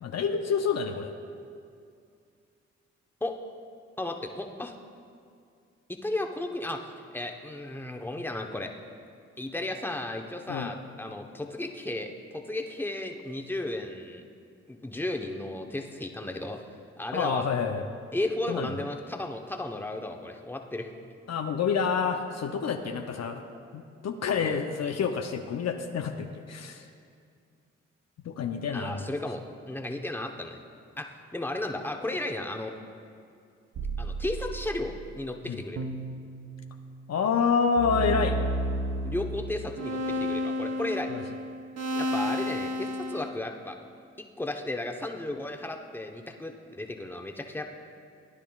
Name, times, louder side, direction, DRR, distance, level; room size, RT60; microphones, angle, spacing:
voice 1, 0.0-1.1 10.5-10.7 17.1-17.9 18.5-18.7 21.3-23.4 23.7-26.9 28.2-29.1 35.4-35.6 37.1-38.4 41.1-41.2, left 6 dB, 60° left, 5 dB, 0.7 m, -28 dB
voice 2, 4.0-4.7 5.9-8.7 9.4-14.2 14.7-16.6 17.0-17.4 18.1-20.9 24.4-24.6 28.7-29.4 29.7-30.6 31.0-32.7 34.0-35.8 39.0-41.1 41.9-43.8 44.4-47.6, left 1 dB, 5° left, 3 dB, 1.0 m, -34 dB
sound 1, 33.8-35.1 35.8-37.1 37.8-43.3, equal, 60° right, 0.9 m, -32 dB
16.0 x 10.0 x 2.4 m, 2.4 s
hypercardioid pair, 40°, 31 cm